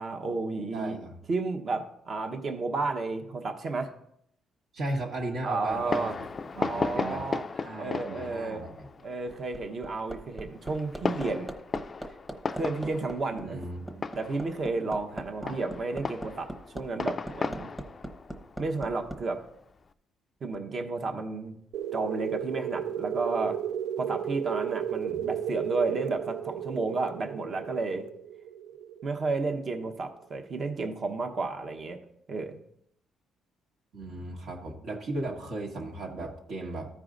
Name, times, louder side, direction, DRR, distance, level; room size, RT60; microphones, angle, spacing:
voice 1, 0.0-1.0 1.3-3.9 5.4-6.2 6.5-7.4 7.8-8.6 9.0-11.5 12.5-13.6 14.2-17.7 18.6-19.4 20.4-21.6 21.9-23.6 24.0-28.1 29.0-32.0 32.3-32.6, right 3 dB, 40° right, 5 dB, 1.0 m, -32 dB
voice 2, 0.7-1.2 4.7-6.3 6.5-7.3 7.6-8.9 13.3-14.0 15.4-15.6 25.2-25.3 33.9-36.9, right 2 dB, 65° right, -1 dB, 1.5 m, -36 dB
Fireworks, 5.7-19.8, left 4 dB, 35° left, 0.4 m, -36 dB
Hammer, 9.3-19.2 20.5-20.6, right 1 dB, 10° right, 1.0 m, -40 dB
sound 1, 21.7-30.1, right 9 dB, 85° right, 0.4 m, -34 dB
14.0 x 4.8 x 3.8 m, 0.72 s
cardioid pair, 110°, 0 cm